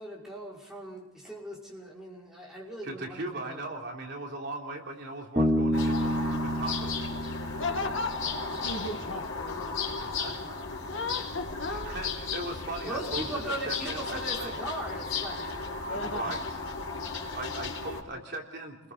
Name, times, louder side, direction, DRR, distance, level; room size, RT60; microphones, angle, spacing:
voice 1, 0.0-3.6 12.8-16.0, right 1 dB, ahead, -5 dB, 5.7 m, -39 dB
voice 2, 2.8-7.0 9.9-10.5 11.7-14.5 15.9-16.4 17.3-18.9, right 2 dB, 55° right, 0 dB, 3.5 m, -39 dB
Bass guitar, 5.4-8.9, equal, 20° right, 3.6 m, -29 dB
sound 1, 5.7-18.0, left 4 dB, 80° left, 4.4 m, -35 dB
voice 3, 7.6-9.8 10.8-12.1 15.8-16.4 17.5-17.6, left 2 dB, 60° left, 5 dB, 1.9 m, -36 dB
30.0 x 21.5 x 4.1 m, 0.86 s
head